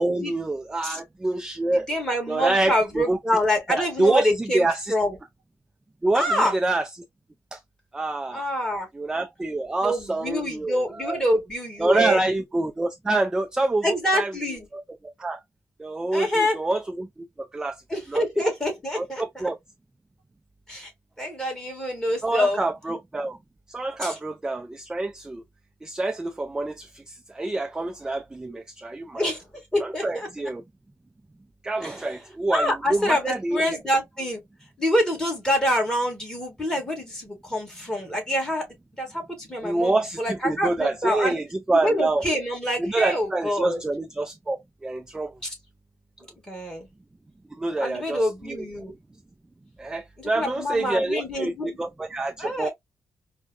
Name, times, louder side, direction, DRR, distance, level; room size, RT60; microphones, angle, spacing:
voice 1, 0.0-1.9 2.3-3.2 3.7-4.9 6.0-6.9 7.5-7.6 7.9-8.5 8.9-11.2 11.8-13.9 14.1-14.8 15.2-15.4 15.8-17.1 17.5-17.8 18.1-18.2 19.0-19.6 22.2-23.4 23.7-25.4 25.8-29.2 29.8-30.6 31.6-33.8 39.6-42.2 42.8-45.3 47.6-48.6 49.8-52.7, right 2 dB, 15° right, 0.3 m, -26 dB
voice 2, 1.7-5.2 6.1-6.5 8.3-8.9 9.8-12.2 13.8-14.7 16.1-16.6 17.9-19.5 20.7-20.9 21.2-22.6 24.0-24.2 28.4-28.5 29.1-29.4 29.7-30.3 31.8-32.0 32.5-34.4 34.8-38.7 38.9-41.4 41.7-43.8 46.5-46.9 47.8-48.9 50.2-51.8 52.4-52.7, equal, 10° left, 1.8 m, -26 dB
4.5 x 2.1 x 2.3 m
cardioid pair, 110°, 5 cm